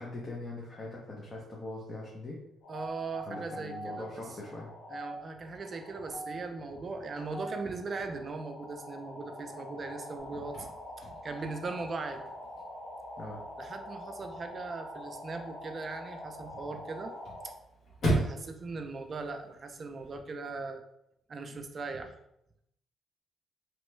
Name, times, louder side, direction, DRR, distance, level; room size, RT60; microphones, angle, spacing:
voice 1, 0.0-2.4 3.3-4.7 10.3-10.4 13.2-13.4 16.7-16.8, left 2 dB, 35° left, -3 dB, 0.7 m, -41 dB
sound 1, 2.6-17.5, equal, 80° left, 1.0 m, -45 dB
voice 2, 2.7-4.2 4.9-10.7 11.0-12.3 13.6-17.1 18.1-20.8 21.3-22.1, right 3 dB, 40° right, 6 dB, 0.4 m, -39 dB
Chirp tweet / Car / Slam, 10.2-20.2, right 1 dB, 60° left, 1.3 m, -39 dB
3.0 x 2.2 x 3.2 m, 0.78 s
cardioid pair, 90°, 0 cm